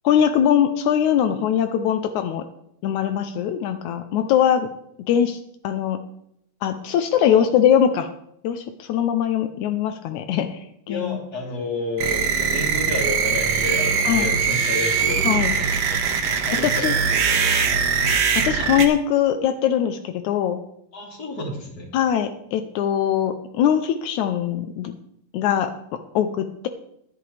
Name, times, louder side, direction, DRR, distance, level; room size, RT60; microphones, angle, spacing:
voice 1, 0.0-2.4 2.8-4.7 5.1-5.4 5.6-6.0 6.6-8.1 8.4-11.2 14.1-14.3 15.2-15.6 16.6-16.9 18.4-20.6 21.9-24.9 25.3-25.7 26.2-26.7, left 9 dB, 85° left, 8 dB, 1.6 m, -21 dB
voice 2, 7.2-7.5 10.9-15.7 16.3-17.9 20.9-21.9, left 1 dB, 30° left, 0 dB, 2.7 m, -30 dB
sound 1, 12.0-18.9, right 6 dB, 55° right, 2.0 m, -21 dB
15.5 x 11.0 x 3.4 m, 0.75 s
omnidirectional pair, 4.3 m